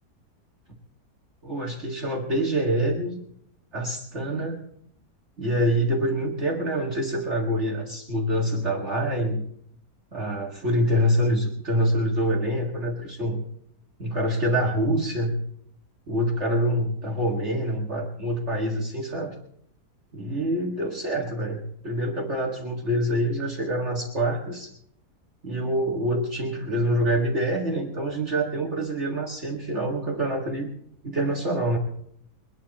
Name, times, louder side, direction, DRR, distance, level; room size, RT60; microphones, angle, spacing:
voice 1, 1.4-3.2 3.7-4.6 5.4-9.5 10.1-13.4 14.0-15.4 16.1-19.3 20.1-24.7 25.4-30.7 31.0-31.8, equal, 40° right, -1 dB, 2.2 m, -26 dB
23.0 x 10.5 x 4.2 m, 0.68 s
omnidirectional pair, 1.8 m